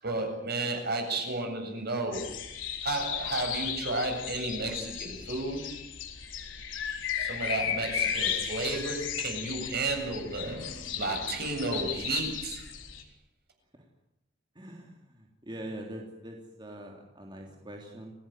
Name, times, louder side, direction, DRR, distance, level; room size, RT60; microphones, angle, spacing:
voice 1, 0.0-2.5 2.8-5.8 7.2-12.7, right 2 dB, 55° right, 4 dB, 7.9 m, -33 dB
sound 1, 2.1-13.0, left 8 dB, 85° left, 4.1 m, -35 dB
voice 2, 14.5-18.1, right 1 dB, 25° right, 1 dB, 3.4 m, -43 dB
29.0 x 17.5 x 9.3 m, 0.79 s
head